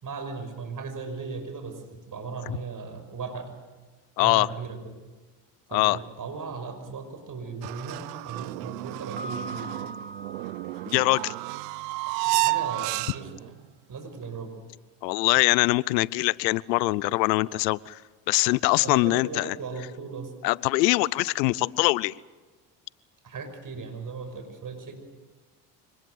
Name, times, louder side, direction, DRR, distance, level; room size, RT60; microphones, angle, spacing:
voice 1, 0.0-3.5 4.2-4.9 5.7-9.7 12.1-13.6 13.9-14.5 18.8-20.3 23.2-24.9, right 4 dB, 40° right, 6 dB, 6.1 m, -37 dB
voice 2, 4.2-4.5 5.7-6.0 10.9-11.3 15.0-18.0 18.3-19.5 20.4-22.1, left 21 dB, 85° left, 23 dB, 0.7 m, -23 dB
sound 1, 7.6-13.5, right 21 dB, 85° right, 0.8 m, -31 dB
Piano, 9.2-12.1, right 1 dB, 20° right, 1.5 m, -42 dB
25.5 x 20.0 x 7.8 m, 1.3 s
hypercardioid pair, 65°, 49 cm